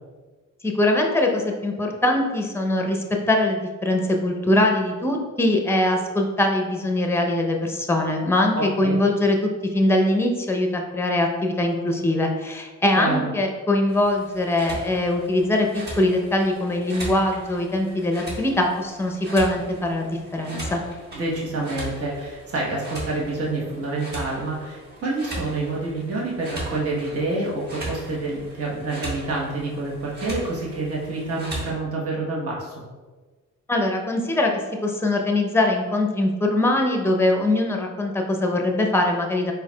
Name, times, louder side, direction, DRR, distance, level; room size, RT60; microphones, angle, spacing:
voice 1, 0.6-9.4 9.7-15.7 16.0-20.8 33.7-34.5 34.8-39.5, left 1 dB, 10° left, 2 dB, 0.6 m, -22 dB
voice 2, 8.5-9.0 13.0-13.3 21.1-32.8, right 2 dB, 50° right, -4 dB, 1.1 m, -27 dB
sound 1, 13.9-31.7, right 1 dB, 35° right, 1.4 m, -38 dB
4.5 x 4.0 x 2.2 m, 1.3 s
cardioid pair, 90°, 30 cm